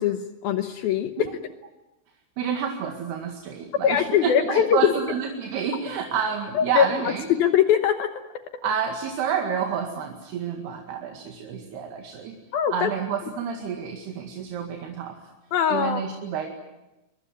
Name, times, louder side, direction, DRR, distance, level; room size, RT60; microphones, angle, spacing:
voice 1, 0.0-1.3 3.8-4.9 6.5-8.1 12.5-12.9 15.5-16.0, left 9 dB, 75° left, 7 dB, 2.2 m, -22 dB
voice 2, 2.4-7.3 8.6-12.4 12.7-15.2 15.7-16.5, right 7 dB, 60° right, 2 dB, 3.7 m, -29 dB
24.5 x 23.0 x 9.5 m, 1.0 s
omnidirectional pair, 5.7 m